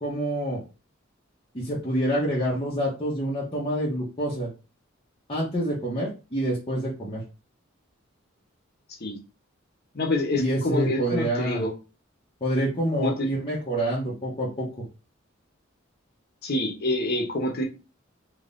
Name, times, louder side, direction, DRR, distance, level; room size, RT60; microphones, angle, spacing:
voice 1, 0.0-0.6 1.5-4.5 5.3-7.2 10.4-11.6 12.4-14.7, right 1 dB, 25° left, -6 dB, 0.9 m, -27 dB
voice 2, 9.9-11.7 13.0-13.3 16.4-17.6, left 1 dB, 50° left, 1 dB, 1.0 m, -26 dB
3.6 x 2.9 x 2.6 m, 0.32 s
head